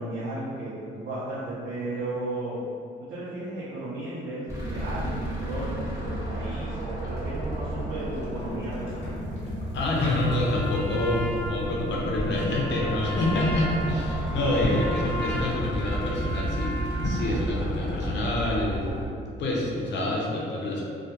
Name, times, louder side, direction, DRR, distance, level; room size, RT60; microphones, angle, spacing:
voice 1, 0.0-2.7 3.1-9.1 14.3-14.8, right 2 dB, 75° right, -9 dB, 0.6 m, -34 dB
sound 1, 4.5-19.1, right 1 dB, 15° right, 0.9 m, -32 dB
sound 2, 7.9-10.8 11.0-11.3 11.9-12.5 14.5-15.0 16.9-17.4, left 2 dB, 35° left, 1.0 m, -35 dB
voice 2, 9.7-16.7 17.0-18.9 19.4-20.8, left 1 dB, 65° left, -3 dB, 0.6 m, -27 dB
Trumpet, 10.1-17.3, left 1 dB, 10° left, 0.4 m, -36 dB
2.3 x 2.1 x 2.8 m, 2.3 s
cardioid pair, 90°, 20 cm